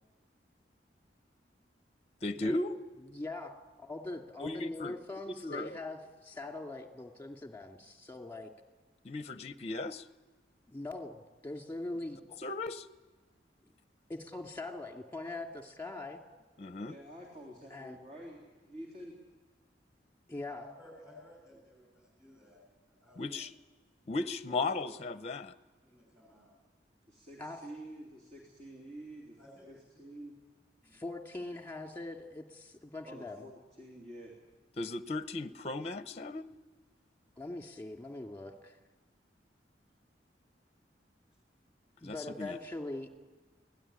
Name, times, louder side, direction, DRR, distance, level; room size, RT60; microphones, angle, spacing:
voice 1, 2.2-2.8 4.4-4.9 5.3-5.8 9.0-10.0 12.4-12.9 16.6-17.0 23.2-23.5 24.1-25.5 34.8-36.4 42.0-42.5, left 2 dB, 35° left, 12 dB, 0.7 m, -36 dB
voice 2, 3.1-3.5 3.8-8.5 10.7-12.2 14.1-16.2 17.7-18.0 20.3-20.6 27.4-27.6 30.9-33.4 37.4-38.8 42.0-43.1, left 2 dB, 10° left, 4 dB, 2.2 m, -42 dB
voice 3, 16.8-19.1 27.1-29.4 29.7-30.3 33.0-34.3, right 1 dB, 40° right, -1 dB, 3.4 m, -48 dB
voice 4, 20.5-22.6 22.9-23.2 24.5-25.0 25.8-26.5 29.4-29.8 30.9-31.0, left 1 dB, 5° right, 0 dB, 6.9 m, -55 dB
24.0 x 17.5 x 10.0 m, 1.3 s
head